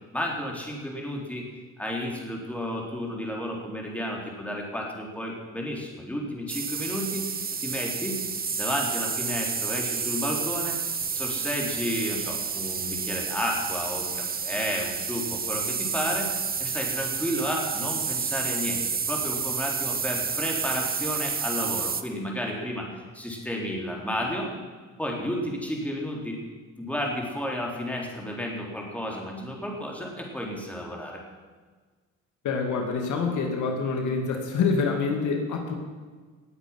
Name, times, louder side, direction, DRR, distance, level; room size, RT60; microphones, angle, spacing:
voice 1, 0.1-1.4 1.8-7.2 7.6-8.2 8.6-16.3 16.6-22.9 23.1-24.5 25.0-26.4 26.8-31.2, equal, 5° left, -1 dB, 3.8 m, -32 dB
sound 1, 6.5-22.0, right 6 dB, 30° right, 0.9 m, -30 dB
voice 2, 32.4-35.7, left 4 dB, 75° left, 2 dB, 2.4 m, -26 dB
19.0 x 8.0 x 6.0 m, 1.4 s
cardioid pair, 90°, 30 cm